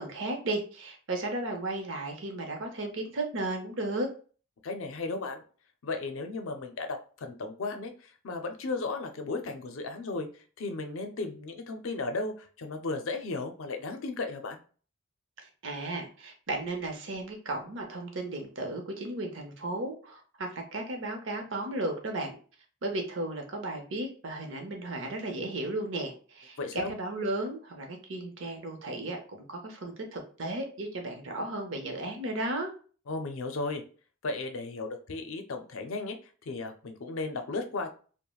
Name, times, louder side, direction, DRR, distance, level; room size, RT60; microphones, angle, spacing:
voice 1, 0.0-4.1 15.4-22.3 22.8-32.7, right 2 dB, 65° right, 3 dB, 0.7 m, -35 dB
voice 2, 4.6-5.4 5.8-10.3 10.6-14.6 26.6-26.9 33.1-33.8 34.2-36.2 36.5-37.9, left 3 dB, 85° left, 6 dB, 0.5 m, -35 dB
3.1 x 2.1 x 2.3 m, 0.40 s
head